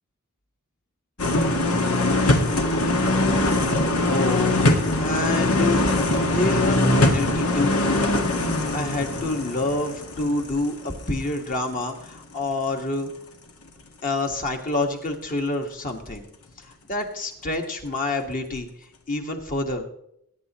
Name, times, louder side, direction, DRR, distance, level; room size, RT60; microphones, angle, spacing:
sound 1, 1.2-11.0 11.4-11.5, left 2 dB, 85° left, 1.8 m, -22 dB
voice 1, 4.1-4.6 5.0-5.8 6.3-7.8 8.5-13.1 14.0-16.2 16.9-18.7 19.1-19.8, left 2 dB, 40° left, 3 dB, 1.7 m, -27 dB
21.0 x 9.9 x 3.0 m, 0.73 s
head